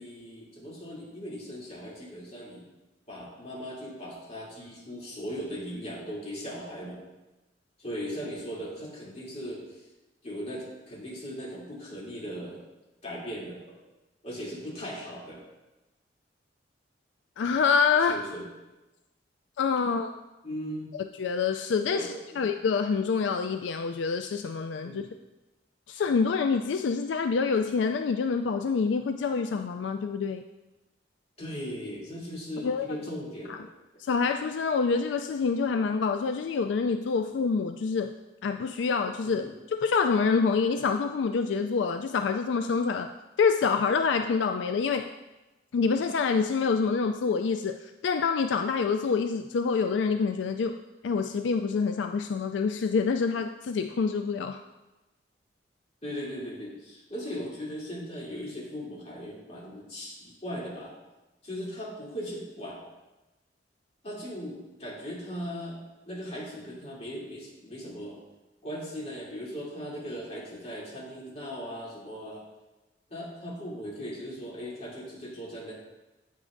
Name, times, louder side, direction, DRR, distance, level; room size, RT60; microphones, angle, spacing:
voice 1, 0.0-2.6 3.1-7.0 7.8-9.8 10.2-12.6 13.0-13.8 14.2-15.4 18.1-18.4 20.4-20.9 21.9-22.4 24.8-25.1 31.4-33.7 39.2-39.5 56.0-60.9 61.4-62.8 64.0-65.8 66.0-68.2 68.6-72.5 73.1-75.7, equal, 40° left, -6 dB, 2.9 m, -38 dB
voice 2, 17.4-18.2 19.6-20.1 20.9-22.1 22.4-25.1 25.9-30.4 32.6-32.9 33.5-33.6 34.0-38.1 38.4-43.1 43.4-45.1 45.7-50.8 51.0-54.6, left 5 dB, 80° left, 7 dB, 0.3 m, -26 dB
9.6 x 8.7 x 2.6 m, 1.1 s
head